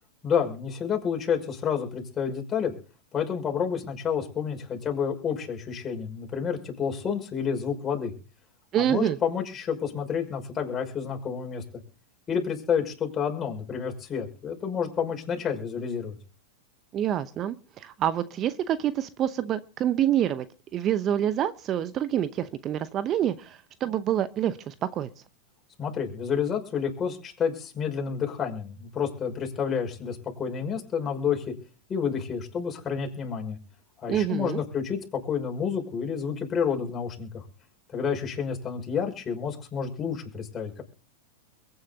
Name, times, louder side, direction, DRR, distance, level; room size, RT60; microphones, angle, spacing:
voice 1, 0.2-2.7 3.1-8.1 8.8-11.6 12.3-16.2 25.8-31.4 31.9-33.6 34.0-35.0 35.2-37.4 37.9-40.8, left 7 dB, 25° left, 2 dB, 5.8 m, -29 dB
voice 2, 8.7-9.2 16.9-20.4 20.7-25.1 34.1-34.6, right 10 dB, 35° right, 13 dB, 0.8 m, -27 dB
22.5 x 9.6 x 4.1 m, 0.39 s
hypercardioid pair, 105°, 0 cm